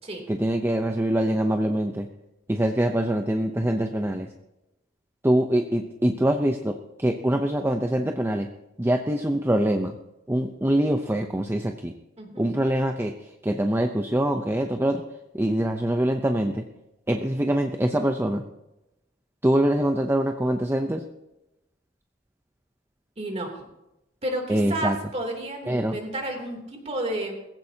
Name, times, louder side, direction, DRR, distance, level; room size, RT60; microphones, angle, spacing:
voice 1, 0.3-2.1 2.5-4.3 5.2-8.5 8.8-9.9 10.3-11.9 12.4-15.0 15.3-16.6 17.1-18.4 19.4-21.0 24.5-25.0 25.7-26.0, right 1 dB, 10° right, 5 dB, 0.7 m, -24 dB
voice 2, 23.2-23.6 24.2-27.3, right 1 dB, 35° right, 1 dB, 3.0 m, -31 dB
20.5 x 15.5 x 2.8 m, 0.93 s
head